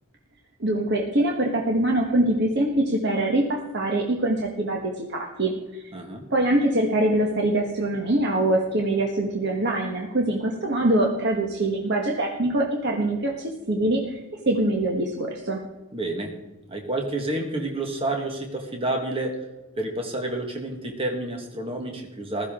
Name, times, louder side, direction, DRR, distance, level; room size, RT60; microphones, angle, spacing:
voice 1, 0.6-5.8 6.3-15.6, right 1 dB, 50° right, 1 dB, 1.3 m, -24 dB
voice 2, 5.9-6.3 15.9-16.4 16.7-19.5 19.8-22.5, right 2 dB, 25° right, 2 dB, 1.5 m, -29 dB
15.0 x 13.5 x 3.7 m, 1.2 s
head